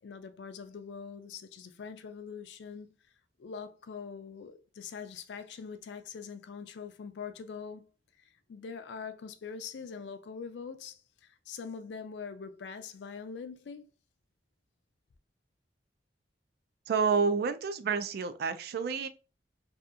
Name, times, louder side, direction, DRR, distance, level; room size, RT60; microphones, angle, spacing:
voice 1, 0.0-3.0 3.4-7.8 8.5-13.9, left 6 dB, 75° left, 0.4 m, -43 dB
voice 2, 16.9-19.1, right 5 dB, 60° right, 0.3 m, -29 dB
2.7 x 2.3 x 2.4 m
head